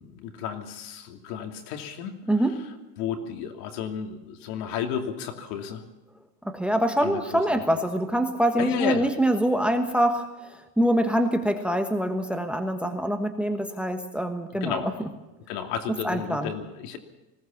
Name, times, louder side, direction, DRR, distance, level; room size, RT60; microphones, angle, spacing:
voice 1, 0.0-2.7 3.0-5.8 7.0-7.6 8.6-9.1 14.6-15.0 15.5-17.0, left 8 dB, 75° left, 4 dB, 2.9 m, -33 dB
voice 2, 6.4-14.8 16.0-16.5, right 1 dB, ahead, 6 dB, 1.3 m, -25 dB
20.0 x 18.0 x 7.2 m, 1.0 s
cardioid pair, 155°, 47 cm